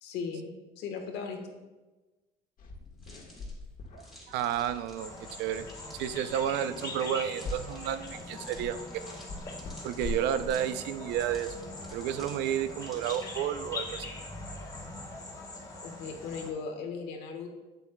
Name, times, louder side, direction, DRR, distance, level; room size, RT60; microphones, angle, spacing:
voice 1, 0.0-1.4 15.8-17.5, left 5 dB, 85° left, 3 dB, 1.3 m, -37 dB
sound 1, 2.6-12.5, left 3 dB, 55° left, 1.3 m, -44 dB
sound 2, 3.0-13.5, equal, ahead, 2.1 m, -55 dB
voice 2, 3.9-5.1 5.4-5.7 6.0-9.0 9.8-11.5 11.9-14.1, right 10 dB, 90° right, 12 dB, 0.5 m, -31 dB
sound 3, 5.0-16.5, left 2 dB, 20° left, 1.4 m, -42 dB
8.1 x 8.1 x 2.2 m, 1.2 s
cardioid pair, 110°, 17 cm